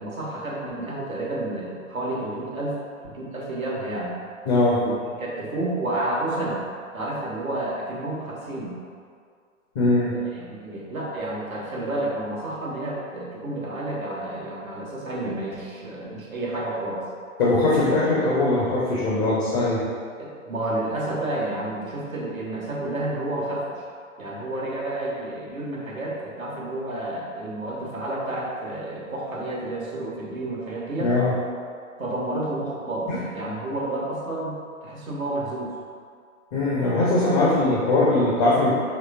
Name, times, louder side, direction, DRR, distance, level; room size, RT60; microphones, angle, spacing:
voice 1, 0.0-4.1 4.8-6.6 6.9-8.7 10.1-17.0 20.2-23.8 24.2-31.1 32.0-35.7, right 1 dB, 80° right, -3 dB, 1.1 m, -30 dB
voice 2, 4.5-4.8 9.7-10.1 17.4-19.8 31.0-31.3 33.1-33.2 36.5-38.7, left 2 dB, 30° left, -7 dB, 0.7 m, -21 dB
5.7 x 3.1 x 2.4 m, 2.1 s
figure-of-eight pair, 115°, 41 cm